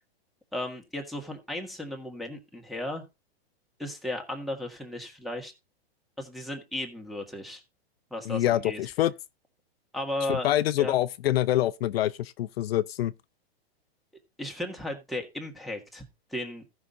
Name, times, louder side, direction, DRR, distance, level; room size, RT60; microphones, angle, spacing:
voice 1, 0.5-3.0 3.8-5.5 6.2-7.6 8.1-8.8 9.9-10.5 10.8-10.9 14.4-16.0 16.3-16.6, left 1 dB, ahead, 1.7 m, -35 dB
voice 2, 8.3-9.1 10.3-13.1, left 13 dB, 70° left, 0.6 m, -26 dB
14.5 x 5.8 x 3.8 m
hypercardioid pair, 150°, 31 cm